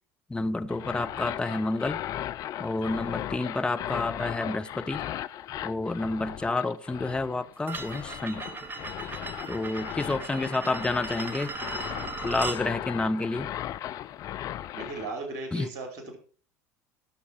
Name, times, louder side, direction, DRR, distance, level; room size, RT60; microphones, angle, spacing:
voice 1, 0.3-2.0 2.6-5.0 5.6-8.4 9.5-11.5 12.2-13.5 15.5-15.7, left 2 dB, 10° left, 1.0 m, -29 dB
sound 1, 0.7-15.1, left 12 dB, 45° left, 0.6 m, -37 dB
sound 2, 7.7-12.6, right 3 dB, 25° right, 1.8 m, -37 dB
voice 2, 14.7-16.2, right 3 dB, 55° right, 5.1 m, -37 dB
17.5 x 7.1 x 4.7 m
figure-of-eight pair, 70°, 8 cm